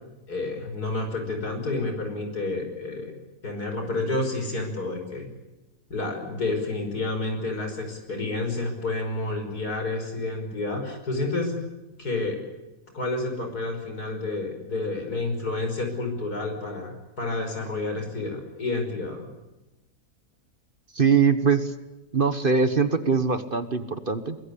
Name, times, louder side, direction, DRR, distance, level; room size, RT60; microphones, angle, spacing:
voice 1, 0.3-3.1 3.4-5.3 5.9-11.6 12.0-12.4 12.9-19.3, left 2 dB, 85° left, 5 dB, 6.1 m, -29 dB
voice 2, 20.9-21.7 22.1-24.4, right 5 dB, 35° right, 10 dB, 1.4 m, -22 dB
23.5 x 22.0 x 8.5 m, 1.1 s
omnidirectional pair, 1.6 m